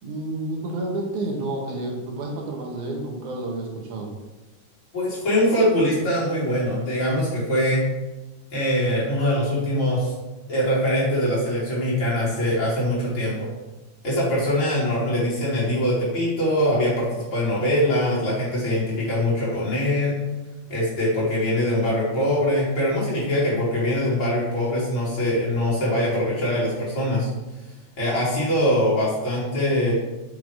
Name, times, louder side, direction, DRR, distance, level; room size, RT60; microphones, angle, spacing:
voice 1, 0.0-4.1, right 2 dB, 80° right, 0 dB, 2.8 m, -30 dB
voice 2, 4.9-7.8 8.5-10.1 10.5-13.5 14.0-20.2 20.7-27.3 28.0-29.9, left 1 dB, 45° left, -8 dB, 3.4 m, -23 dB
6.6 x 5.9 x 4.9 m, 1.1 s
omnidirectional pair, 3.4 m